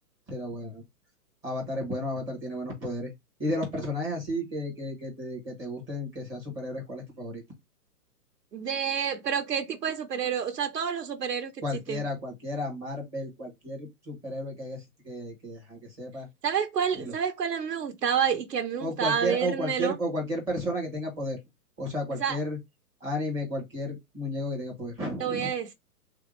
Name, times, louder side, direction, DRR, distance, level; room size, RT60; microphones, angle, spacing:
voice 1, 0.3-0.8 1.4-3.1 3.4-7.4 11.6-16.3 17.0-17.1 18.8-21.4 21.8-22.6 23.0-25.5, equal, 5° right, 0.5 m, -33 dB
voice 2, 8.5-11.5 11.9-12.0 16.4-19.9 22.2-22.4 25.2-25.7, right 7 dB, 80° right, 0.9 m, -29 dB
3.1 x 2.5 x 3.0 m
hypercardioid pair, 130°, 48 cm